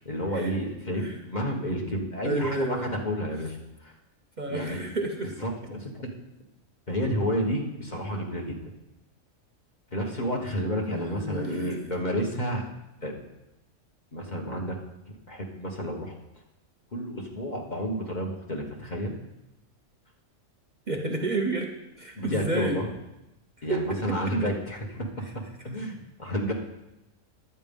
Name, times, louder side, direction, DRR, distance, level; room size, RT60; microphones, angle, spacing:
voice 1, 0.0-3.6 3.8-3.9 4.5-4.8 5.4-6.1 6.9-8.6 9.9-12.6 13.0-13.3 14.1-14.8 15.3-16.2 16.9-19.1 22.1-22.9 23.6-25.1 25.3-26.5, equal, 35° left, 0 dB, 1.6 m, -30 dB
voice 2, 2.2-2.9 4.4-5.3 10.9-11.8 20.9-21.7 22.0-22.8 23.7-24.1, right 2 dB, 40° right, 2 dB, 0.9 m, -30 dB
11.0 x 8.3 x 5.4 m, 0.93 s
omnidirectional pair, 1.3 m